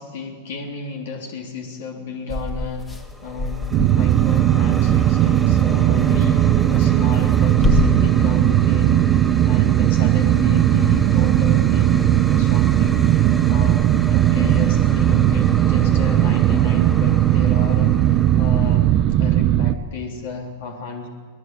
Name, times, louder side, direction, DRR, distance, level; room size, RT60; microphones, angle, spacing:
voice 1, 0.0-13.1 13.5-13.8 14.1-18.9 19.2-21.1, left 5 dB, 65° left, 2 dB, 3.4 m, -32 dB
sound 1, 2.3-7.8, left 2 dB, 15° left, 1.9 m, -27 dB
sound 2, 2.8-19.3, right 1 dB, ahead, 2.7 m, -35 dB
sound 3, 3.7-19.7, right 12 dB, 40° right, 0.8 m, -17 dB
20.5 x 20.0 x 9.1 m, 1.5 s
hypercardioid pair, 110°, 0 cm